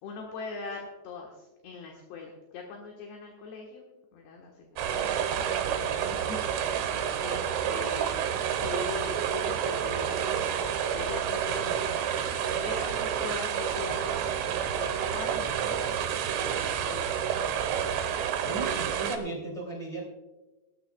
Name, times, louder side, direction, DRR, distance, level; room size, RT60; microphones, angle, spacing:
voice 1, 0.0-8.2 8.5-11.9 12.6-17.5, left 4 dB, 65° left, 0 dB, 3.1 m, -42 dB
sound 1, 4.8-19.2, right 8 dB, 75° right, 3.5 m, -29 dB
voice 2, 18.4-20.0, right 2 dB, 60° right, -3 dB, 0.3 m, -35 dB
19.0 x 14.0 x 2.3 m, 1.1 s
omnidirectional pair, 5.9 m